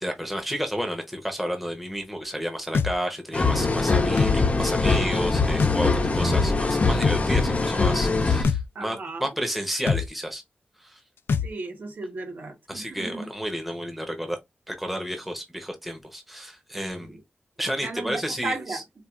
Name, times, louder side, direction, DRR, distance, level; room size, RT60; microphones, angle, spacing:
voice 1, 0.0-10.4 10.8-11.0 12.7-14.4 14.7-17.2 17.6-18.8, equal, 5° right, 0.7 m, -31 dB
sound 1, 2.7-2.9 4.2-4.4 5.6-5.8 7.0-7.2 8.4-8.6 9.9-10.1 11.3-11.5, left 5 dB, 90° left, 0.3 m, -23 dB
sound 2, 3.3-8.4, left 3 dB, 40° left, 0.6 m, -22 dB
voice 2, 8.7-9.3 11.4-13.3 17.0-17.2 17.8-18.8, right 3 dB, 55° right, 1.0 m, -35 dB
4.3 x 2.3 x 2.4 m
wide cardioid pair, 140°, 4 cm